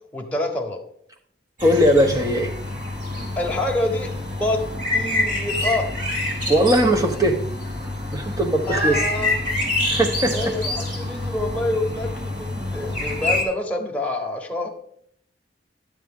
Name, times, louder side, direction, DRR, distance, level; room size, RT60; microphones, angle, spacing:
voice 1, 0.1-0.8 3.4-4.6 4.9-5.9 8.7-9.5 10.2-14.7, left 1 dB, 10° left, 0 dB, 1.2 m, -27 dB
voice 2, 1.6-2.5 6.5-7.5 8.1-9.0 9.9-10.3, equal, 20° right, 4 dB, 0.9 m, -19 dB
sound 1, 1.6-13.4, left 2 dB, 45° right, 3.4 m, -27 dB
11.5 x 7.4 x 3.7 m, 0.68 s
head